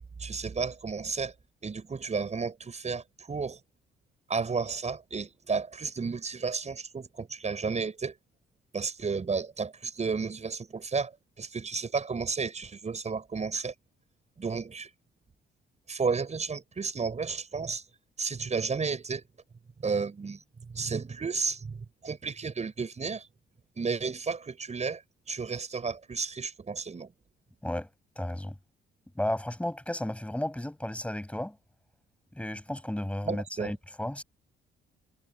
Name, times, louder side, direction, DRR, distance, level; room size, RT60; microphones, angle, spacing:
voice 1, 0.2-1.3 1.6-3.6 4.3-8.1 8.7-11.1 11.4-13.7 14.4-14.9 15.9-17.8 18.2-19.2 19.8-20.4 20.7-23.3 23.8-25.0 25.3-27.1 33.2-33.7, right 5 dB, 35° right, 6.8 m, -32 dB
voice 2, 28.2-28.5 29.1-31.6 32.3-34.2, left 1 dB, 5° left, 7.9 m, -33 dB
cardioid pair, 90°, 20 cm